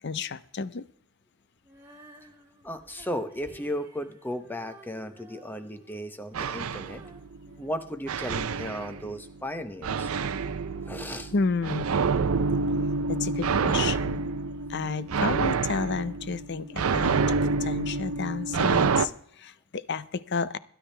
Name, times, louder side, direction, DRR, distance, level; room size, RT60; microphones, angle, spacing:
voice 1, 0.0-0.8 11.3-11.9 13.1-14.3 14.7-20.6, left 4 dB, 50° left, 16 dB, 0.6 m, -31 dB
Female singing, 1.6-8.7, right 1 dB, 15° right, 2.7 m, -54 dB
voice 2, 2.6-7.0 7.6-10.1 10.9-11.3, equal, 10° left, 9 dB, 0.8 m, -35 dB
sound 1, 6.3-7.5 8.1-9.3 9.8-19.1, right 4 dB, 75° right, 0.6 m, -27 dB
22.0 x 10.0 x 3.4 m, 0.62 s
head